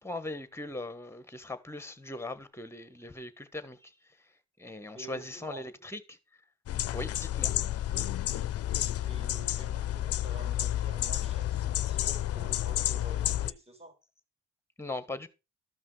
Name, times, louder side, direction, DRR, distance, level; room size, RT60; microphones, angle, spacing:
voice 1, 0.0-3.9 4.6-6.2 6.9-7.5 14.8-15.3, left 2 dB, 10° left, 1.4 m, -40 dB
voice 2, 4.9-5.6 9.0-14.0, right 2 dB, 20° right, 3.1 m, -49 dB
sound 1, 6.7-13.5, left 12 dB, 50° left, 0.5 m, -31 dB
13.0 x 5.5 x 4.7 m
cardioid pair, 90°, 30 cm